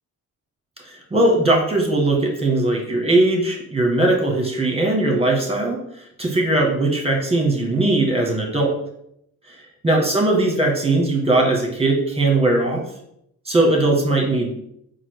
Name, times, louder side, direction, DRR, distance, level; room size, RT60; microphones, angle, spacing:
voice 1, 0.8-5.8 6.2-8.7 9.5-9.6 9.8-12.8 13.4-14.5, right 2 dB, 15° right, 1 dB, 1.6 m, -19 dB
4.1 x 2.5 x 4.7 m, 0.74 s
hypercardioid pair, 40°, 43 cm